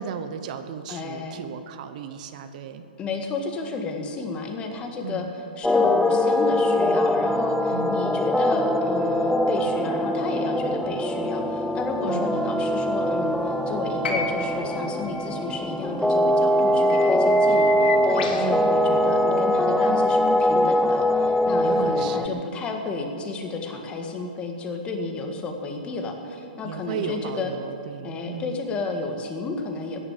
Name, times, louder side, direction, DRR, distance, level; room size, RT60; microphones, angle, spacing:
voice 1, 0.0-2.8 5.0-5.3 7.7-8.1 12.1-12.3 18.4-18.7 21.6-22.5 26.6-28.6, right 7 dB, 50° right, 10 dB, 1.0 m, -35 dB
voice 2, 0.9-1.4 3.0-27.5 28.0-30.0, left 3 dB, 20° left, 3 dB, 1.8 m, -32 dB
sound 1, 5.6-22.3, left 1 dB, ahead, 0.5 m, -22 dB
sound 2, 12.1-12.2 16.1-16.2 16.6-18.5 19.8-19.9 21.5-21.6, left 7 dB, 60° left, 2.2 m, -33 dB
sound 3, 14.0-18.2 19.4-19.5, left 4 dB, 80° left, 2.9 m, -36 dB
15.5 x 10.5 x 7.6 m, 3.0 s
hypercardioid pair, 140°, 5 cm